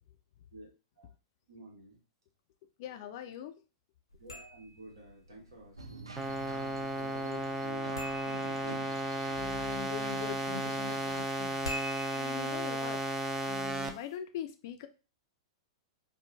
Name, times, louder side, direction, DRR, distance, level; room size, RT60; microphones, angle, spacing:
voice 1, 1.5-2.0 4.2-9.0, right 1 dB, 70° right, -1 dB, 1.1 m, -51 dB
voice 2, 2.8-3.6 9.4-11.6 12.1-13.0 13.4-14.9, left 10 dB, 50° left, 8 dB, 0.3 m, -42 dB
sound 1, 4.1-13.9, left 1 dB, 90° left, 0.6 m, -48 dB
sound 2, 5.8-11.2, right 3 dB, 90° right, 0.4 m, -48 dB
sound 3, 6.2-13.9, right 1 dB, 15° right, 0.4 m, -34 dB
3.1 x 2.1 x 2.2 m, 0.33 s
figure-of-eight pair, 100°, 3 cm